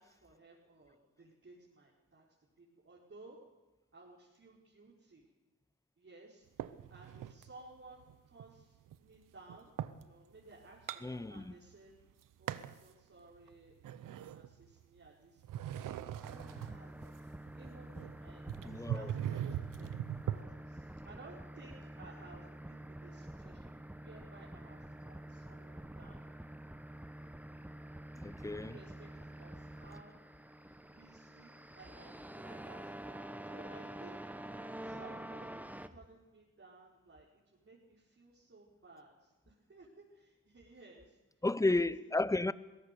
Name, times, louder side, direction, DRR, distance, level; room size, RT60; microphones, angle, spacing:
voice 1, 0.0-2.3 2.6-3.4 3.9-5.3 6.0-9.7 10.0-11.9 12.4-17.3 17.5-26.3 28.6-30.2 30.9-34.5 34.8-35.6 35.9-41.2, right 3 dB, 45° right, 4.7 m, -58 dB
sound 1, 6.6-7.5 8.0-10.1 10.5-11.7 12.0-12.9 13.3-15.1 15.4-20.4, right 11 dB, 85° right, 0.8 m, -41 dB
voice 2, 11.0-11.5 18.6-19.1 28.2-28.8 41.4-42.5, left 2 dB, 10° left, 0.8 m, -33 dB
sound 2, 16.2-35.9, right 1 dB, 5° right, 1.2 m, -48 dB
22.5 x 17.0 x 6.8 m
cardioid pair, 55°, 31 cm